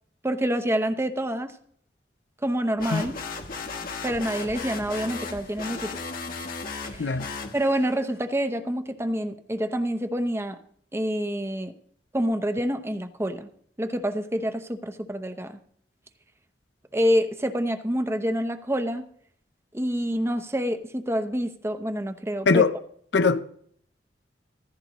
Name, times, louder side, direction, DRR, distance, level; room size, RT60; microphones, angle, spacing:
voice 1, 0.2-1.5 2.4-3.1 4.0-6.0 6.8-7.2 7.5-10.6 10.9-11.7 12.1-13.5 13.8-15.6 16.9-19.1 19.7-22.6, equal, 15° right, 0.8 m, -27 dB
sound 1, 2.8-8.0, left 4 dB, 55° left, 1.3 m, -35 dB
voice 2, 2.9-3.0 7.0-7.3 22.5-22.7 23.1-23.4, left 4 dB, 85° left, 0.6 m, -20 dB
15.0 x 14.5 x 3.0 m
head